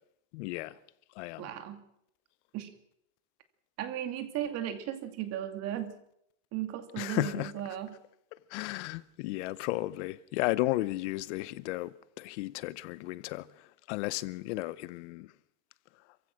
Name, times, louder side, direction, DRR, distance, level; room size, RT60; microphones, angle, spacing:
voice 1, 0.3-0.8 1.2-1.5 7.0-7.5 8.5-15.3, left 19 dB, 55° left, 0.7 m, -34 dB
voice 2, 1.4-1.9 2.5-2.7 3.8-6.0 6.5-8.0, right 11 dB, 35° right, 2.3 m, -36 dB
27.0 x 16.0 x 6.3 m
supercardioid pair, 165°, 41 cm